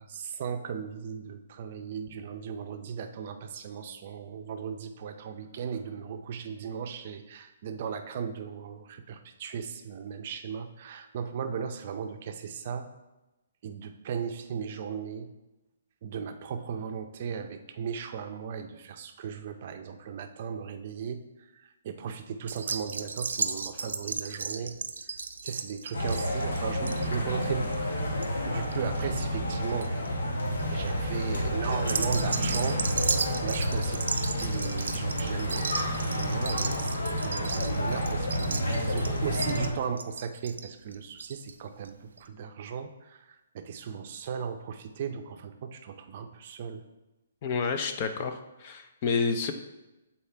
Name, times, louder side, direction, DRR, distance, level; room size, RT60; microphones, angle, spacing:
voice 1, 0.0-12.9 13.6-15.3 16.0-21.2 21.8-24.7 25.4-27.8 28.4-29.9 30.7-32.8 33.4-46.8, right 7 dB, 40° right, 7 dB, 0.5 m, -36 dB
sound 1, 22.5-29.3 29.5-30.1 30.6-30.9 31.7-41.5 41.8-41.9 42.2-42.3, right 5 dB, 90° right, 0.4 m, -35 dB
sound 2, 25.9-39.7, equal, 85° left, 1.3 m, -30 dB
voice 2, 47.4-49.5, left 5 dB, 30° left, 7 dB, 0.5 m, -29 dB
7.1 x 4.2 x 3.3 m, 1.0 s
hypercardioid pair, 165°, 0 cm